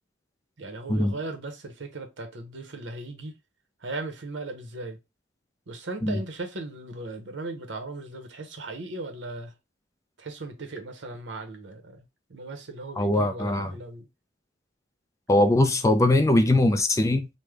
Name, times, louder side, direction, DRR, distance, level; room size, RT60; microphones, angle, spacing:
voice 1, 0.6-3.3 3.8-5.0 5.7-9.5 10.2-12.0 12.3-14.1, right 2 dB, 70° right, 0.8 m, -37 dB
voice 2, 13.0-13.7 15.3-17.3, left 1 dB, 15° left, 0.3 m, -21 dB
3.3 x 2.1 x 3.3 m
head